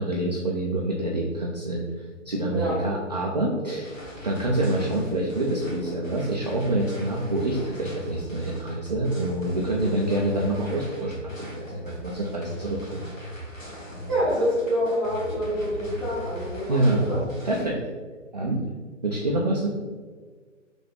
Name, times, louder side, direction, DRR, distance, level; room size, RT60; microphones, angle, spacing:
voice 1, 0.0-1.9 2.3-3.9 4.2-13.0 16.7-17.1 17.4-17.9 18.3-18.6 19.0-19.7, right 1 dB, 35° right, -2 dB, 0.4 m, -26 dB
voice 2, 2.5-2.9 14.1-17.2, equal, ahead, -13 dB, 1.4 m, -27 dB
sound 1, 3.8-17.7, equal, 90° left, 1.3 m, -39 dB
3.4 x 3.3 x 3.8 m, 1.5 s
figure-of-eight pair, 135°, 38 cm